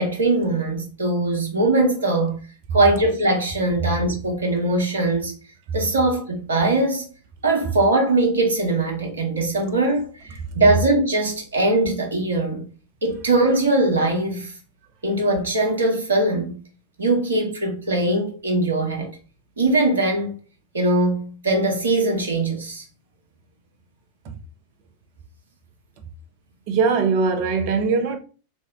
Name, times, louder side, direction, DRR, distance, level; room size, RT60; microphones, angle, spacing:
voice 1, 0.0-2.4 2.7-5.3 5.7-7.0 7.4-12.7 13.0-14.5 15.0-16.6 17.0-19.1 19.6-20.3 20.7-22.8, right 2 dB, 70° right, 1.1 m, -21 dB
voice 2, 26.7-28.2, right 5 dB, 45° right, 0.7 m, -20 dB
3.3 x 2.7 x 3.5 m
figure-of-eight pair, 90°, 0 cm